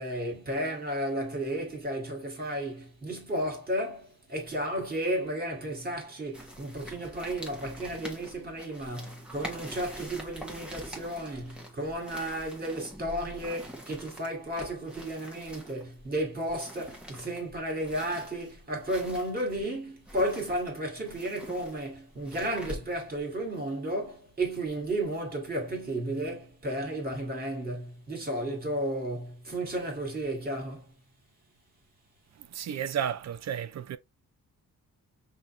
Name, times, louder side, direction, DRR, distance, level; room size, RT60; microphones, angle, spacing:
voice 1, 0.0-30.9, right 1 dB, 25° right, 2.0 m, -33 dB
sound 1, 6.3-23.2, equal, 5° right, 1.2 m, -45 dB
voice 2, 32.5-34.0, right 9 dB, 50° right, 0.5 m, -32 dB
5.6 x 2.8 x 3.0 m
wide cardioid pair, 155°, 34 cm